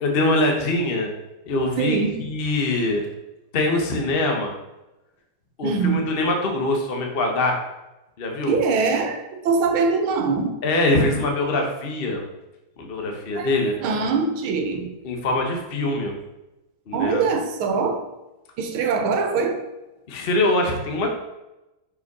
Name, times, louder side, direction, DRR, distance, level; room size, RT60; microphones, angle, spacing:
voice 1, 0.0-1.1 1.5-2.0 2.2-3.1 3.5-4.5 5.6-7.6 8.2-8.6 10.6-12.2 12.8-13.7 15.0-16.2 16.9-17.2 20.1-21.1, left 2 dB, 40° left, 2 dB, 0.8 m, -23 dB
voice 2, 1.8-2.2 5.6-6.0 8.5-10.5 13.3-13.5 13.8-14.9 16.9-18.0 18.6-19.6, right 4 dB, 80° right, 5 dB, 1.7 m, -23 dB
5.6 x 4.9 x 4.7 m, 0.98 s
omnidirectional pair, 2.3 m